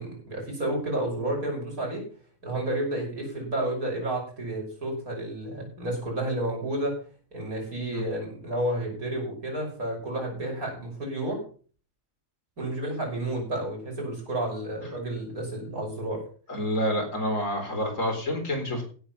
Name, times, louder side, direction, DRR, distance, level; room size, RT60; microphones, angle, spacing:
voice 1, 0.0-2.0 2.4-6.9 7.3-11.4 12.6-16.2, right 1 dB, 90° right, 0 dB, 6.3 m, -31 dB
voice 2, 16.5-18.8, equal, 65° left, 2 dB, 4.6 m, -28 dB
16.0 x 7.5 x 5.8 m, 0.41 s
omnidirectional pair, 1.5 m